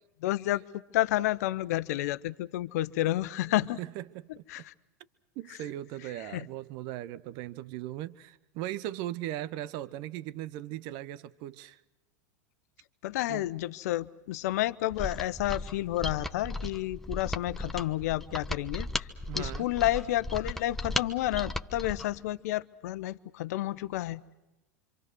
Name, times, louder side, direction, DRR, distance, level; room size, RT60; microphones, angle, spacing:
voice 1, 0.2-0.6 0.9-3.8 4.5-4.6 6.3-6.4 13.0-19.1 19.3-24.3, left 15 dB, 65° left, 1.0 m, -30 dB
voice 2, 3.5-4.6 5.3-11.8 13.3-13.5 19.3-19.7, right 14 dB, 55° right, 1.0 m, -39 dB
Mechanisms, 14.9-22.1, left 1 dB, 5° left, 1.1 m, -36 dB
26.5 x 26.0 x 6.3 m
hypercardioid pair, 95°, 9 cm